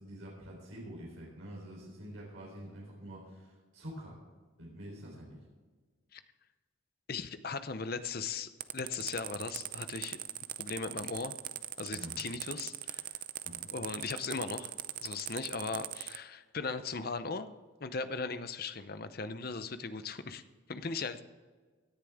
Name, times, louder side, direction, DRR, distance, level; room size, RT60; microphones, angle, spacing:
voice 1, 0.0-4.2 4.6-5.4 11.9-12.2 13.4-13.7, equal, 80° right, -4 dB, 3.9 m, -47 dB
voice 2, 7.1-10.2 10.6-11.3 11.8-13.0 13.7-14.7 15.0-17.5 17.8-20.4 20.7-21.2, left 4 dB, 45° left, 11 dB, 0.7 m, -38 dB
sound 1, 8.6-16.2, right 13 dB, 40° right, 0.4 m, -40 dB
17.5 x 10.5 x 3.6 m, 1.4 s
head